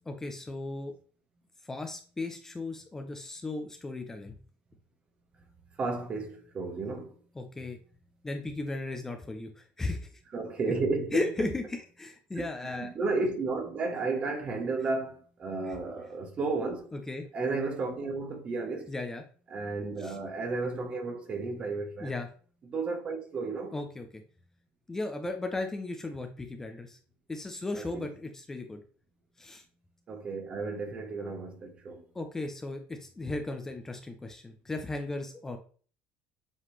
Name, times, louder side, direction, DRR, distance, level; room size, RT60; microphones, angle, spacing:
voice 1, 0.1-0.9 1.6-4.3 7.4-7.8 8.2-10.1 11.1-12.9 16.9-17.2 18.9-19.2 20.0-20.2 22.0-22.3 23.7-24.1 24.9-27.0 27.3-28.8 29.4-29.6 32.1-35.6, left 2 dB, 10° left, 0.7 m, -36 dB
voice 2, 5.8-7.2 10.3-11.5 12.6-16.9 17.3-18.9 19.5-22.1 22.6-23.7 27.7-28.1 30.1-32.0, right 3 dB, 30° right, 1.2 m, -33 dB
7.4 x 4.0 x 3.3 m
cardioid pair, 140°, 4 cm